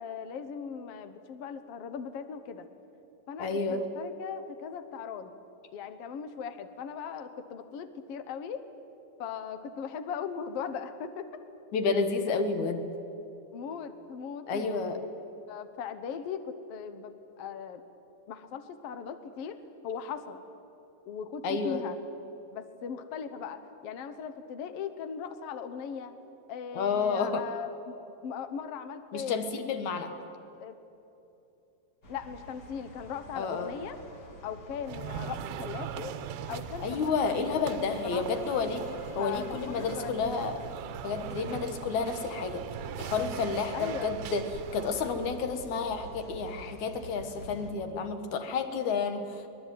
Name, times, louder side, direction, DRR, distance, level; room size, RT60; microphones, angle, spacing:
voice 1, 0.0-2.7 3.3-5.3 5.7-8.6 9.2-11.4 13.5-15.1 15.5-17.8 18.3-20.4 21.0-22.0 22.5-26.1 26.5-28.0 28.2-29.4 30.6-30.8 32.1-34.0 34.4-36.1 36.5-38.6 39.2-40.4 41.3-41.6 43.7-44.1, left 7 dB, 85° left, 10 dB, 1.3 m, -39 dB
voice 2, 3.4-3.9 11.7-12.9 14.5-15.0 21.4-21.8 26.7-27.5 29.1-30.1 33.3-33.7 36.8-38.8 39.2-40.6 41.0-42.6 43.0-44.4 44.7-49.5, left 4 dB, 60° left, 8 dB, 2.5 m, -30 dB
sound 1, 32.0-47.7, right 1 dB, 35° left, 1.7 m, -48 dB
sound 2, 34.8-45.5, right 9 dB, 80° right, 2.7 m, -41 dB
23.5 x 20.0 x 9.3 m, 3.0 s
omnidirectional pair, 4.3 m